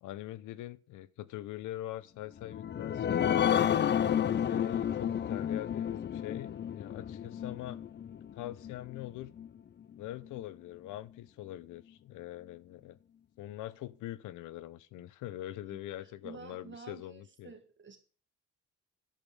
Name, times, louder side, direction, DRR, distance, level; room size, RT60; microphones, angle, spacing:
voice 1, 0.0-3.8 4.4-7.8 8.3-9.3 10.0-13.0 13.4-17.5, left 14 dB, 90° left, 0.7 m, -43 dB
sound 1, 2.4-9.5 9.9-10.0 10.4-10.5, left 9 dB, 35° left, 0.6 m, -31 dB
voice 2, 15.7-18.0, right 5 dB, 40° right, 1.7 m, -51 dB
10.5 x 8.3 x 5.3 m
cardioid pair, 90°, 30 cm